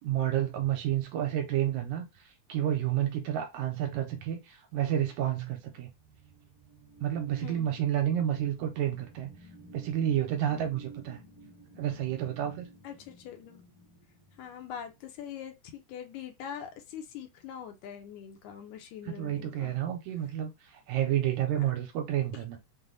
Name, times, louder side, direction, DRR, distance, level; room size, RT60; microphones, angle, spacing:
voice 1, 0.0-5.9 7.0-9.3 9.7-11.2 11.8-12.7 19.1-22.6, right 11 dB, 80° right, 1.9 m, -30 dB
sound 1, 5.9-14.9, right 3 dB, 35° right, 1.1 m, -52 dB
voice 2, 7.4-7.8 12.8-13.6 14.4-19.8 21.5-21.7, left 8 dB, 80° left, 1.9 m, -43 dB
5.5 x 2.1 x 3.8 m
omnidirectional pair, 3.6 m